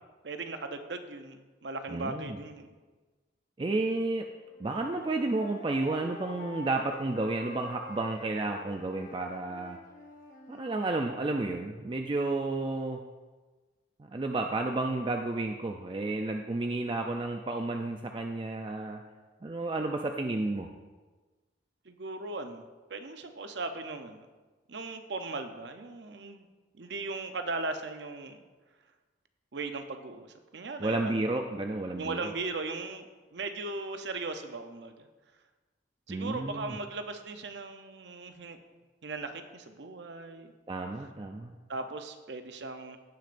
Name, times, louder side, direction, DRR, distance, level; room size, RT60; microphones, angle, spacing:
voice 1, 0.2-2.7 21.9-22.6 22.9-24.3 24.7-26.5 26.7-28.4 29.5-31.3 32.0-35.1 36.1-38.6 39.0-40.5 41.7-43.0, right 3 dB, 65° right, 7 dB, 0.7 m, -38 dB
voice 2, 1.9-2.4 3.6-4.2 4.6-9.8 10.5-13.0 14.0-19.0 19.4-20.7 30.8-32.3 36.1-36.8 40.7-41.5, right 2 dB, 25° right, 3 dB, 0.4 m, -31 dB
Wind instrument woodwind instrument, 4.3-10.8, left 1 dB, 45° left, 0.9 m, -47 dB
16.5 x 6.2 x 2.6 m, 1.3 s
head